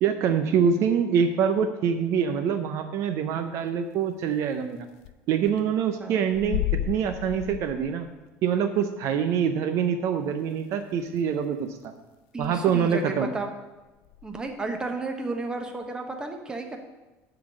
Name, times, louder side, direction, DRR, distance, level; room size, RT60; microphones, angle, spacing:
voice 1, 0.0-4.9 5.3-8.1 8.4-11.9 12.4-13.3, right 7 dB, 55° right, 8 dB, 0.6 m, -25 dB
sound 1, 4.3-4.4 4.6-4.7 5.0-5.1 5.5-5.7 6.3-8.1 8.8-8.9 9.7-9.8 10.7-10.8 11.1-11.2 11.6-11.9 12.4-12.5 12.9-13.1 14.0-15.0, left 13 dB, 85° left, 0.4 m, -33 dB
voice 2, 12.3-13.5 14.2-16.8, right 3 dB, 15° right, 4 dB, 1.0 m, -32 dB
11.5 x 4.0 x 7.2 m, 1.1 s
cardioid pair, 150°, 6 cm